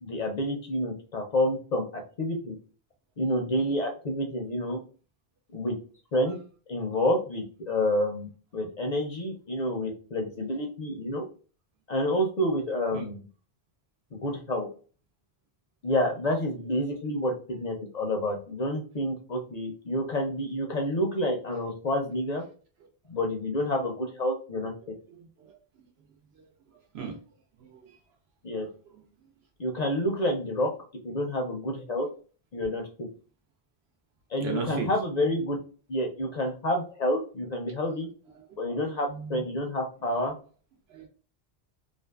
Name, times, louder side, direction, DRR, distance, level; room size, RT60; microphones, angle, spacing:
voice 1, 0.0-2.6 3.2-4.8 5.5-5.7 6.1-6.4 6.7-11.2 11.9-13.3 14.1-14.7 15.8-22.4 23.1-24.7 28.4-28.7 29.6-30.7 31.0-32.1 32.5-32.8 34.3-35.6 35.9-38.1 38.6-40.3, left 1 dB, 55° left, 2 dB, 0.5 m, -29 dB
voice 2, 25.1-25.6 26.9-27.2 27.6-28.0 28.5-28.7 34.4-34.9 38.7-38.8 39.1-39.4 40.9-41.1, right 6 dB, 85° right, 3 dB, 0.9 m, -36 dB
2.5 x 2.4 x 2.2 m, 0.38 s
omnidirectional pair, 1.1 m